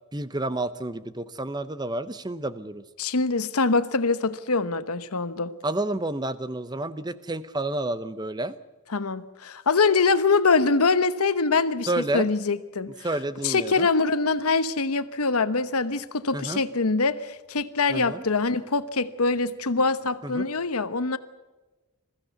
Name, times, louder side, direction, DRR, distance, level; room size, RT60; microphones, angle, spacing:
voice 1, 0.1-2.8 5.6-8.6 11.9-12.3 13.0-13.9 16.3-16.6 17.9-18.2 20.2-20.5, right 2 dB, 20° right, 14 dB, 0.7 m, -30 dB
voice 2, 3.0-5.5 8.9-12.9 13.4-21.2, left 4 dB, 85° left, 13 dB, 1.0 m, -24 dB
21.5 x 15.0 x 8.1 m, 1.2 s
head